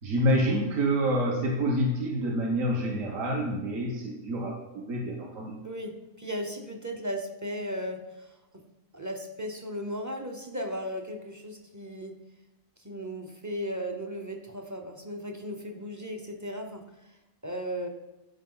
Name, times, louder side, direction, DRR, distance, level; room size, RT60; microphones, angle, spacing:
voice 1, 0.0-5.6, equal, 55° right, -2 dB, 1.8 m, -27 dB
voice 2, 5.6-8.0 8.9-12.1 12.8-16.8 17.4-17.9, equal, 15° right, 3 dB, 0.7 m, -36 dB
13.5 x 5.2 x 4.0 m, 1.0 s
omnidirectional pair, 1.7 m